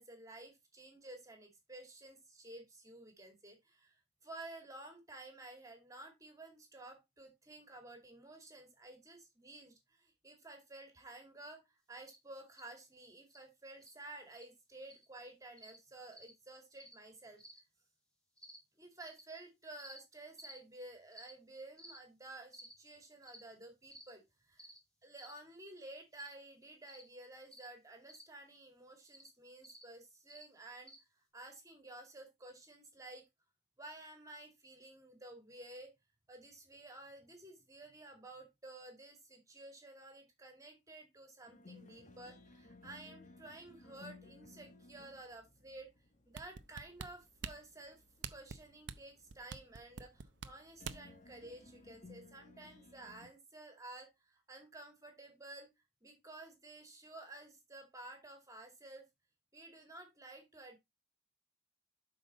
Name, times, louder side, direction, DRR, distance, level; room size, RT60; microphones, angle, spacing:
voice 1, 0.0-17.4 18.8-24.7 25.0-30.9 31.3-33.2 33.8-35.9 36.3-45.9 46.3-48.0 48.3-55.7 56.0-59.0 59.5-60.8, right 2 dB, 15° right, 2.2 m, -53 dB
sound 1, 12.0-12.2 12.5-12.7 13.3-13.4 13.8-13.9 14.3-14.4 14.8-15.0 15.6-15.8 16.1-16.3 16.7-16.9 17.4-17.6 18.4-18.6 19.0-19.2 19.8-20.0 20.4-20.6 21.1-21.3 21.8-22.0 22.5-22.7 23.2-23.4 23.9-24.1 24.6-24.8 25.2-25.4 26.1-26.3 26.9-27.1 27.5-27.7 28.1-28.2 29.1-29.3 29.6-29.8 30.3-30.4 30.9-31.0, equal, 5° left, 2.8 m, -55 dB
sound 2, 41.5-53.3, left 3 dB, 40° left, 1.1 m, -60 dB
sound 3, 46.3-51.2 51.6-51.7, right 6 dB, 65° right, 0.6 m, -45 dB
8.0 x 5.4 x 4.2 m
head